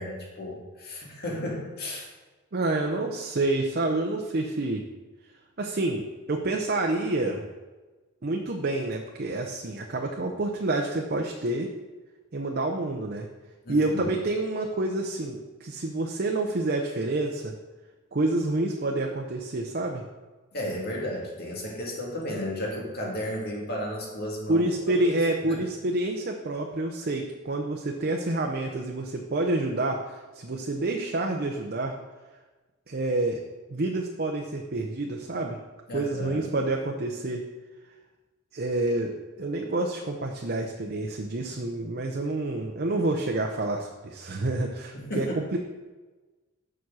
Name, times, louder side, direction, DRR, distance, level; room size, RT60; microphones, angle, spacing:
voice 1, 0.0-2.1 13.6-14.1 20.5-25.2 25.4-25.6 35.9-36.4 44.9-45.4, left 1 dB, 50° left, -2 dB, 2.1 m, -34 dB
voice 2, 2.5-4.8 5.6-7.5 8.2-11.7 12.3-13.3 13.7-17.5 18.1-20.0 24.5-32.0 32.9-33.4 33.7-35.6 35.9-37.5 38.5-45.6, right 2 dB, 50° right, 2 dB, 0.7 m, -28 dB
7.2 x 6.1 x 6.3 m, 1.3 s
head